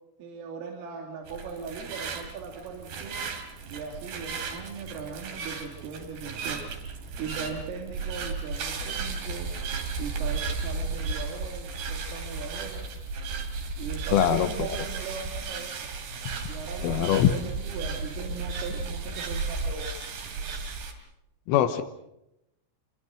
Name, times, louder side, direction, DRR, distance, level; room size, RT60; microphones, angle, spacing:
voice 1, 0.2-3.3 3.7-6.6 7.2-9.5 10.0-12.9 13.8-15.9 16.5-19.9, right 5 dB, 75° right, 1 dB, 5.1 m, -39 dB
sound 1, 1.3-20.9, right 4 dB, 60° right, 4.4 m, -34 dB
voice 2, 14.1-14.5 16.8-17.3 21.5-21.8, left 11 dB, 80° left, 8 dB, 3.6 m, -22 dB
26.5 x 23.0 x 6.4 m, 0.85 s
omnidirectional pair, 5.9 m